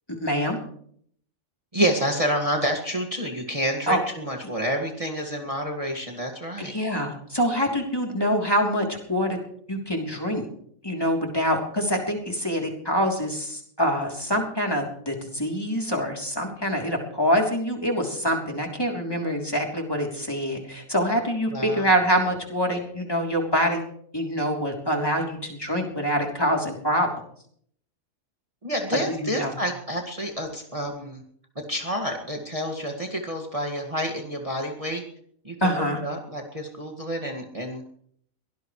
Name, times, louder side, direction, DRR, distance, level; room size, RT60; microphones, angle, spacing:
voice 1, 0.1-0.6 3.9-4.0 6.6-9.4 9.7-10.5 10.8-23.8 24.1-27.1 29.2-29.5 35.6-36.0, equal, 15° left, 0 dB, 3.4 m, -25 dB
voice 2, 1.7-6.7 21.5-21.9 28.6-31.2 31.7-35.0 35.4-37.8, equal, 25° right, 1 dB, 2.1 m, -29 dB
23.0 x 18.5 x 3.2 m, 0.64 s
omnidirectional pair, 1.4 m